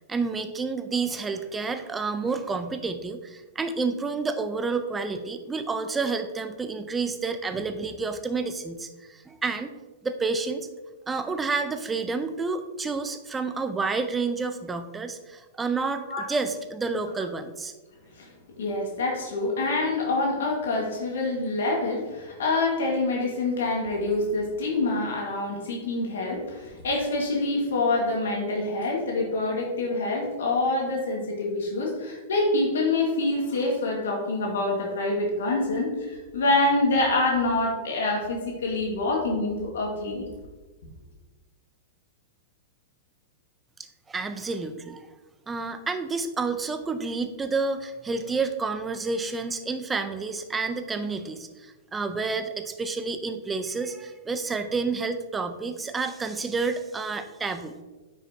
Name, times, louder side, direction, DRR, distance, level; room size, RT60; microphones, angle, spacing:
voice 1, 0.1-9.7 10.0-10.7 11.1-17.7 44.1-45.0 45.5-57.8, right 4 dB, 15° right, 9 dB, 0.7 m, -29 dB
voice 2, 18.6-40.3, left 2 dB, 80° left, -1 dB, 1.9 m, -26 dB
9.4 x 5.8 x 2.9 m, 1.2 s
hypercardioid pair, 120°, 0 cm